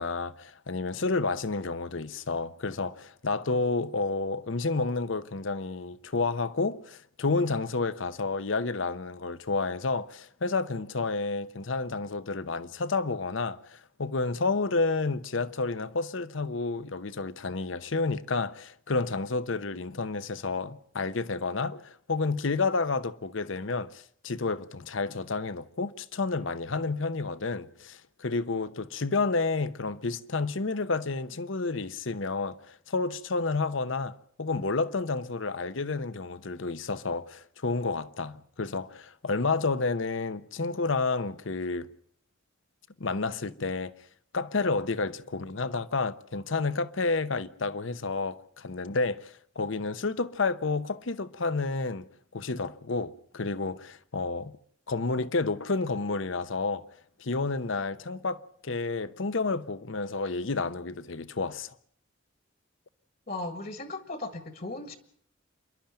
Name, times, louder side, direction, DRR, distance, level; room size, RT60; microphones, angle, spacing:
voice 1, 0.0-41.9 43.0-43.9 44.3-52.1 52.3-54.5 54.9-56.8 57.2-61.7, left 3 dB, 70° left, 0.9 m, -30 dB
voice 2, 63.3-65.0, left 2 dB, 45° left, 1.8 m, -37 dB
28.0 x 12.0 x 8.9 m
head